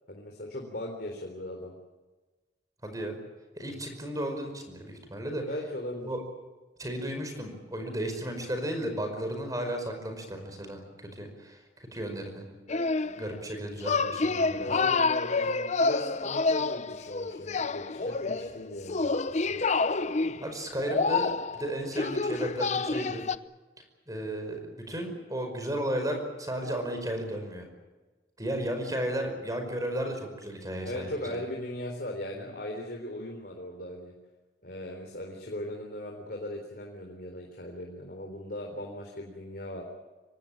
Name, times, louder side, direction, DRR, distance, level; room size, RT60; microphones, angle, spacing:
voice 1, 0.1-1.7 3.8-3.9 5.4-6.1 14.6-19.2 19.5-19.6 30.9-34.1 34.6-39.8, left 1 dB, 60° left, 1 dB, 3.9 m, -38 dB
voice 2, 2.8-3.2 3.6-5.5 6.0-6.2 6.8-12.5 13.2-14.7 20.4-23.2 24.1-27.7 28.4-31.4 32.3-32.5, right 1 dB, 20° right, 5 dB, 5.2 m, -34 dB
sound 1, 12.7-13.3 13.9-23.4, left 4 dB, 40° left, 0.7 m, -28 dB
25.0 x 18.5 x 8.8 m, 1.2 s
head